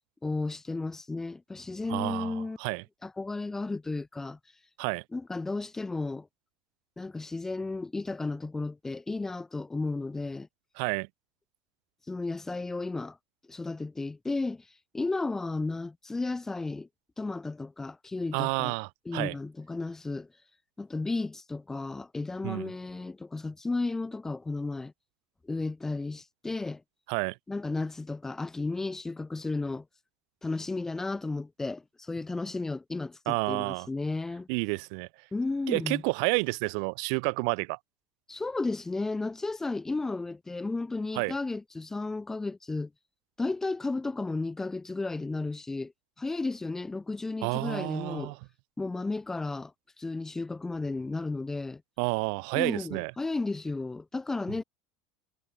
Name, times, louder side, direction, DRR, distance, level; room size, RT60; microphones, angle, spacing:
voice 1, 0.2-2.6 3.0-4.4 5.1-6.3 7.0-10.5 12.1-13.2 13.5-14.6 14.9-16.9 17.2-18.7 19.1-20.3 20.8-24.9 25.4-26.8 27.5-29.8 30.4-34.5 35.3-36.0 38.3-42.9 43.4-45.9 46.2-48.3 48.8-49.7 50.0-51.8 52.5-54.6, left 3 dB, 10° left, 1.9 m, -33 dB
voice 2, 1.9-2.8 4.8-5.0 10.8-11.1 18.3-19.4 22.4-22.7 27.1-27.4 33.3-33.9 34.5-35.1 35.7-37.8 41.1-41.3 47.4-48.4 52.0-53.1, right 39 dB, 70° right, 3.6 m, -30 dB
supercardioid pair, 125°, 4 cm